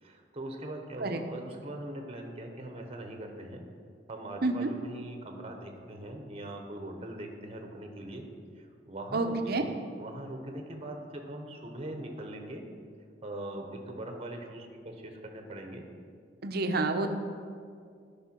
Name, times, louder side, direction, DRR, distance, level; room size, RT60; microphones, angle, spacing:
voice 1, 0.0-3.7 4.1-8.3 8.6-12.6 13.2-15.9, right 1 dB, 35° right, 3 dB, 0.9 m, -41 dB
voice 2, 9.1-9.7 16.4-17.1, right 2 dB, 60° right, 7 dB, 0.7 m, -28 dB
12.0 x 5.5 x 4.4 m, 2.2 s
head